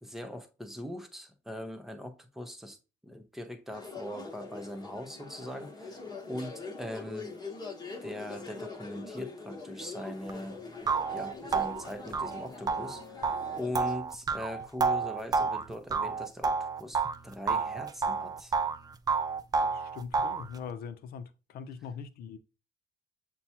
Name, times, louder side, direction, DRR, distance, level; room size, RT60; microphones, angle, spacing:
voice 1, 0.0-2.8 3.0-7.3 8.0-10.6 11.1-18.6, left 1 dB, ahead, 0.7 m, -41 dB
sound 1, 3.7-14.0, left 4 dB, 25° left, 1.1 m, -43 dB
sound 2, 10.3-10.4 10.9-17.2 17.5-18.8 19.1-20.5, right 4 dB, 25° right, 0.3 m, -29 dB
voice 2, 19.6-22.4, left 6 dB, 65° left, 0.6 m, -42 dB
6.8 x 2.3 x 2.9 m
cardioid pair, 110°, 17 cm